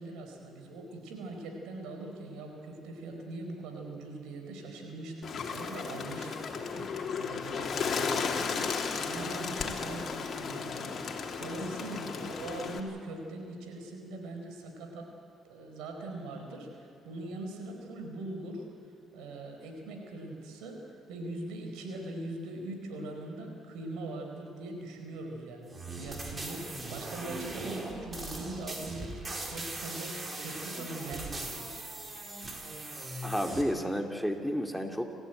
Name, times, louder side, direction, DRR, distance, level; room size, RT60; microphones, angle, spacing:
voice 1, 0.0-15.1 15.4-18.7 19.1-20.8 21.1-31.9, right 2 dB, 85° right, 3 dB, 4.4 m, -41 dB
Bird, 5.2-12.8, left 5 dB, 50° left, 2.9 m, -34 dB
sound 1, 25.7-33.6, right 2 dB, 30° right, 4.5 m, -40 dB
voice 2, 33.2-35.1, equal, ahead, 4 dB, 2.5 m, -31 dB
28.5 x 14.5 x 9.3 m, 2.4 s
supercardioid pair, 65°, 0 cm